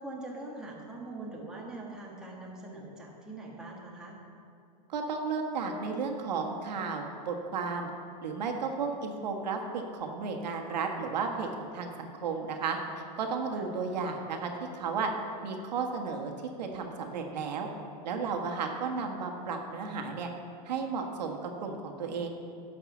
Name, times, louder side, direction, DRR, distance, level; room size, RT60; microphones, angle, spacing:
voice 1, 0.0-4.2 13.5-13.7, right 2 dB, 5° right, -4 dB, 1.6 m, -42 dB
voice 2, 4.9-7.9 8.2-12.8 13.2-15.1 15.4-16.3 16.6-17.7 18.0-20.3 20.6-22.3, right 5 dB, 85° right, 3 dB, 1.5 m, -33 dB
11.0 x 5.9 x 7.1 m, 2.5 s
supercardioid pair, 145°, 21 cm